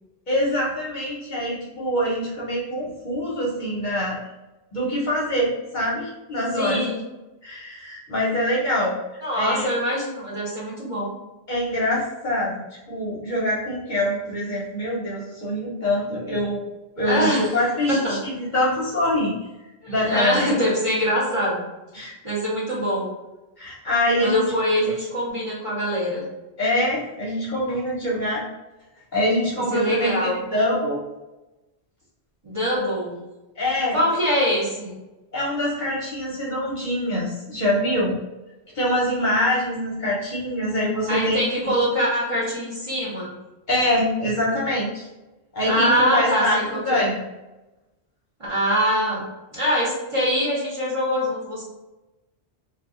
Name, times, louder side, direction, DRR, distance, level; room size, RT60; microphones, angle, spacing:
voice 1, 0.3-4.2 4.7-6.8 7.4-9.7 11.5-16.6 17.0-19.3 19.9-20.5 21.9-22.1 23.6-24.4 26.6-28.4 29.1-31.0 33.6-34.0 35.3-38.2 38.7-41.8 43.7-45.1 45.5-46.6 46.8-47.2, left 1 dB, 50° left, -5 dB, 0.8 m, -24 dB
voice 2, 6.5-7.0 9.2-11.1 17.0-17.6 17.9-18.2 19.8-21.7 22.0-23.1 24.2-26.2 29.7-30.4 32.4-33.2 33.9-35.0 41.1-43.3 45.6-47.1 48.4-49.2 49.5-51.6, equal, 30° right, -7 dB, 0.8 m, -23 dB
2.7 x 2.3 x 3.6 m, 1.0 s
omnidirectional pair, 1.1 m